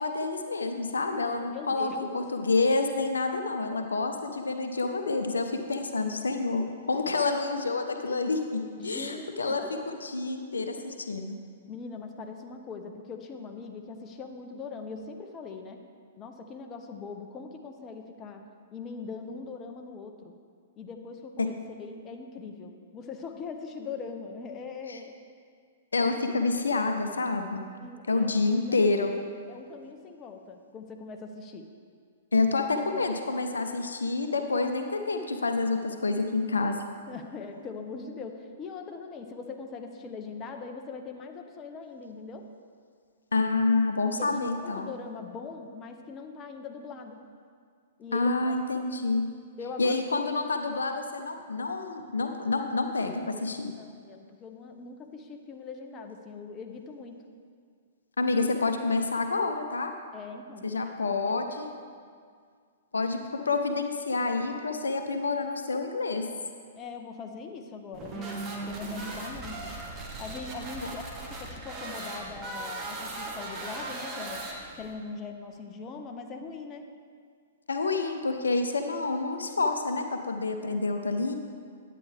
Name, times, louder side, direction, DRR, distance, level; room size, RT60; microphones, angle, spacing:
voice 1, 0.0-11.4 21.4-21.5 24.9-25.0 25.9-27.7 28.1-29.1 32.3-36.8 43.3-44.9 48.1-49.3 49.8-53.7 58.2-59.9 60.6-61.7 62.9-66.3 77.7-81.3, left 3 dB, 75° left, 6 dB, 0.6 m, -28 dB
voice 2, 1.5-2.1 8.8-9.7 11.7-15.8 16.2-18.4 18.7-20.3 20.8-21.5 21.8-25.1 27.8-31.7 37.1-42.5 44.2-47.2 48.0-48.5 49.6-50.0 53.8-57.2 60.1-61.4 66.7-69.7 70.2-74.4 74.7-76.9, left 4 dB, 25° left, 4 dB, 0.7 m, -41 dB
sound 1, 67.9-74.9, right 2 dB, 25° right, 1.4 m, -38 dB
10.5 x 8.5 x 3.4 m, 2.1 s
figure-of-eight pair, 110°, 0 cm